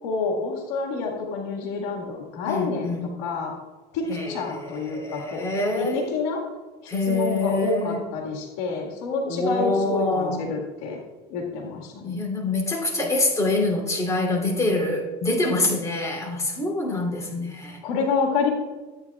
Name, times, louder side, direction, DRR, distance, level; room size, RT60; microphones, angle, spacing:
voice 1, 0.0-3.5 3.9-5.4 5.8-6.4 6.8-11.0 11.3-12.2 17.1-17.3 17.8-18.5, left 4 dB, 80° left, 1 dB, 1.7 m, -28 dB
voice 2, 2.4-3.1 4.1-6.1 6.9-8.0 9.2-10.5 12.0-17.8, left 2 dB, 15° left, -1 dB, 3.0 m, -25 dB
13.5 x 8.9 x 2.3 m, 1.2 s
supercardioid pair, 110°, 20 cm